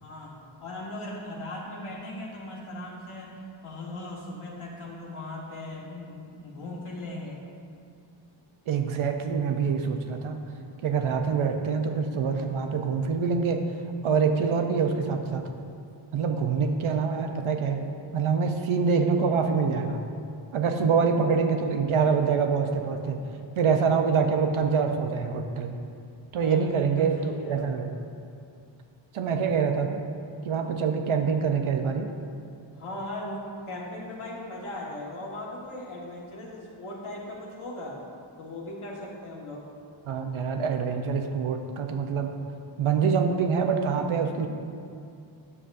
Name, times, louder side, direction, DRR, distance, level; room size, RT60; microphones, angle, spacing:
voice 1, 0.0-7.4 10.3-10.6 26.4-27.7 32.7-38.0 38.4-39.6, left 1 dB, 90° left, -4 dB, 1.6 m, -38 dB
voice 2, 8.7-10.4 10.8-13.6 14.0-15.5 16.1-17.8 18.1-20.0 20.5-23.2 23.6-25.8 26.3-27.9 29.1-30.0 30.4-32.1 40.1-42.4 42.8-44.5, right 5 dB, 80° right, 5 dB, 0.7 m, -25 dB
9.8 x 6.8 x 2.6 m, 2.4 s
wide cardioid pair, 115°, 48 cm